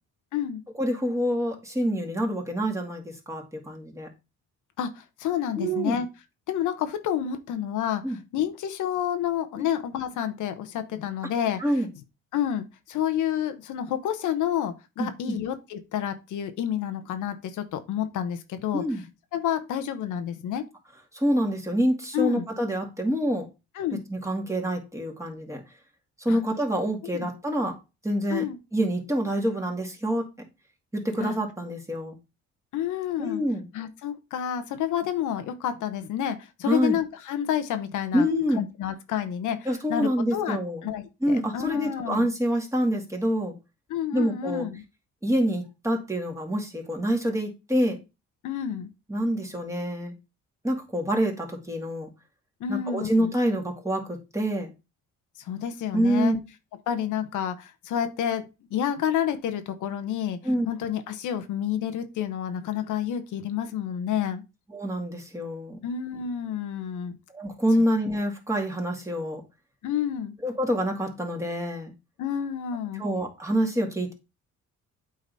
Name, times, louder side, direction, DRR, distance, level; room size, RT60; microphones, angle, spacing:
voice 1, 0.8-4.1 5.6-6.0 8.0-8.2 9.6-9.7 11.6-11.9 15.0-15.4 18.7-19.0 21.1-23.5 24.1-25.6 26.2-27.8 28.0-28.4 28.7-30.3 30.9-32.2 33.2-33.7 36.6-37.0 38.1-38.6 39.7-40.8 41.2-43.6 44.1-44.7 45.2-48.0 49.1-50.1 50.6-52.1 52.7-54.7 55.9-56.4 60.4-60.7 64.7-65.8 67.3-69.4 70.4-71.9 73.0-74.1, equal, 10° right, 1 dB, 2.3 m, -26 dB
voice 2, 4.8-6.1 6.5-11.6 12.3-18.8 19.3-20.6 22.1-22.5 23.7-24.0 26.3-26.4 27.0-27.3 28.3-28.6 31.2-31.4 32.7-33.4 33.7-38.3 38.6-42.3 43.9-44.8 48.4-48.9 52.6-53.3 55.4-56.4 56.9-58.4 58.7-60.4 60.7-64.4 65.8-67.2 69.8-70.3 72.2-73.0, left 9 dB, 80° left, 9 dB, 1.0 m, -29 dB
8.5 x 4.0 x 4.0 m, 0.27 s
cardioid pair, 90°, 30 cm